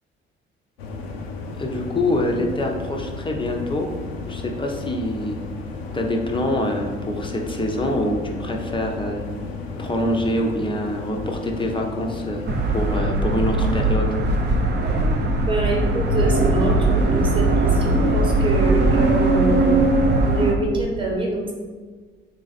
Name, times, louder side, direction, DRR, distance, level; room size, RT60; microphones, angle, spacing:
sound 1, 0.8-13.0, left 4 dB, 80° left, 0.5 m, -33 dB
voice 1, 1.6-3.9 4.3-5.4 5.9-9.2 9.8-12.4 12.7-14.1, left 1 dB, 15° left, 2 dB, 0.7 m, -25 dB
sound 2, 12.5-20.5, right 2 dB, 35° right, 0.7 m, -19 dB
voice 2, 15.4-19.7 20.2-21.5, right 1 dB, 15° right, -2 dB, 1.1 m, -25 dB
4.1 x 2.4 x 4.0 m, 1.5 s
figure-of-eight pair, 45°, 30 cm